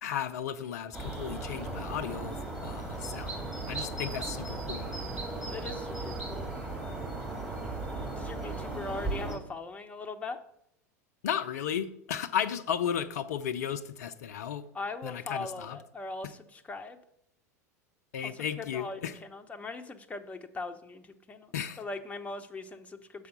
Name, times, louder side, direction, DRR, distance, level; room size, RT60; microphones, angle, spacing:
voice 1, 0.0-3.4 3.7-4.9 11.2-14.6 15.0-15.8 18.1-19.1 21.5-21.8, left 9 dB, 70° left, 10 dB, 0.5 m, -34 dB
sound 1, 0.9-9.4, right 2 dB, 10° right, 2.3 m, -36 dB
voice 2, 5.5-6.5 8.1-10.4 14.7-17.0 18.2-23.3, left 3 dB, 15° left, 6 dB, 0.8 m, -40 dB
6.8 x 4.9 x 6.7 m, 0.75 s
figure-of-eight pair, 80°, 9 cm